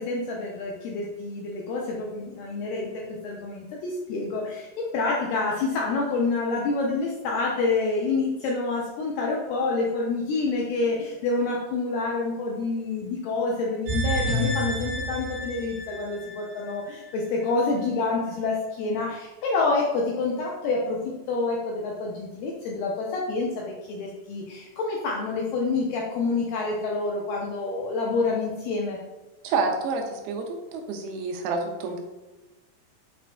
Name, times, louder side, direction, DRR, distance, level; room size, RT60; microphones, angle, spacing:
voice 1, 0.0-21.0 21.3-29.0, left 3 dB, 85° left, -2 dB, 2.0 m, -27 dB
sound 1, 13.9-17.1 17.4-17.5, equal, 55° right, 1.8 m, -30 dB
voice 2, 29.4-30.4 30.7-32.0, right 4 dB, 85° right, 3 dB, 2.4 m, -28 dB
6.8 x 2.4 x 2.2 m, 1.1 s
omnidirectional pair, 4.3 m